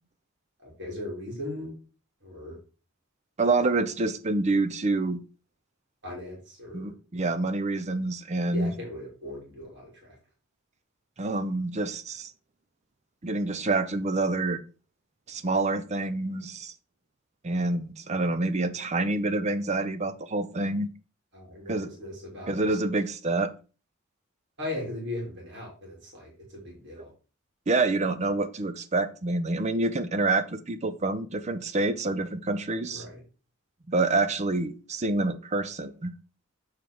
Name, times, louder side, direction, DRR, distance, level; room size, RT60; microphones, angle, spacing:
voice 1, 0.6-1.7 2.2-2.6 6.0-6.9 8.5-10.1 21.3-22.7 24.6-27.1 32.9-33.2, left 1 dB, 55° right, -2 dB, 3.2 m, -38 dB
voice 2, 3.4-5.2 6.7-8.7 11.2-12.3 13.2-14.6 15.3-16.7 17.4-20.9 21.7-21.9 22.5-23.5 27.0-27.1 27.7-33.1 33.9-36.1, right 2 dB, 35° right, 12 dB, 0.6 m, -27 dB
7.1 x 4.8 x 4.6 m, 0.35 s
head